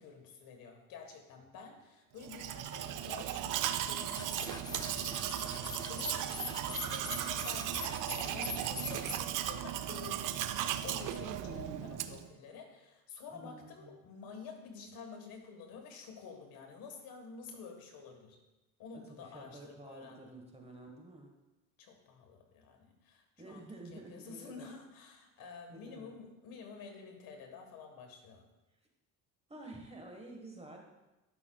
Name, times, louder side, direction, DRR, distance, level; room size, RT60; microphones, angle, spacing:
voice 1, 0.0-18.4 18.8-20.4 21.8-28.5, left 5 dB, 80° left, 3 dB, 1.4 m, -50 dB
Domestic sounds home sounds, 2.2-12.3, right 11 dB, 65° right, 0.5 m, -37 dB
sound 1, 4.1-9.2, left 4 dB, 15° left, 0.3 m, -43 dB
voice 2, 11.2-12.0 13.3-14.0 19.2-21.3 23.4-24.7 25.7-26.2 29.5-30.8, right 2 dB, 15° right, 2 dB, 1.3 m, -50 dB
12.0 x 5.7 x 2.3 m, 1.0 s
cardioid pair, 95°, 35 cm